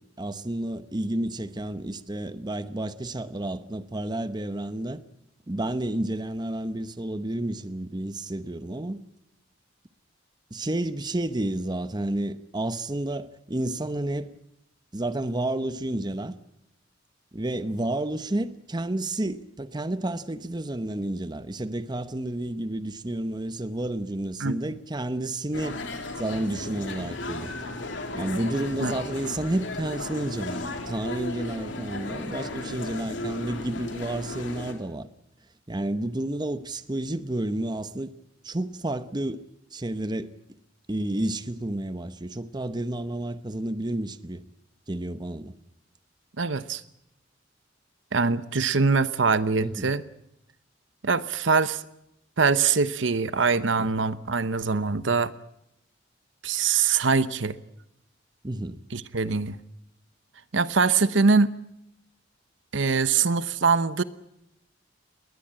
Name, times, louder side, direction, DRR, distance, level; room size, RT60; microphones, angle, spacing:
voice 1, 0.0-5.0 5.5-9.0 10.5-14.3 14.9-16.4 17.3-25.8 26.2-27.5 28.1-35.1 35.7-38.1 38.4-39.4 39.7-40.3 40.9-44.4 44.9-45.5 49.6-49.9 53.8-53.9 58.4-58.8, right 1 dB, 20° right, 0.9 m, -30 dB
voice 2, 24.4-24.7 28.8-28.9 46.4-46.8 48.1-50.0 51.0-51.8 52.4-55.3 56.4-57.6 58.9-59.6 60.5-61.5 62.7-64.0, right 4 dB, 75° right, 0.9 m, -23 dB
sound 1, 25.5-34.7, left 2 dB, 70° left, 3.2 m, -35 dB
20.5 x 20.0 x 8.8 m
head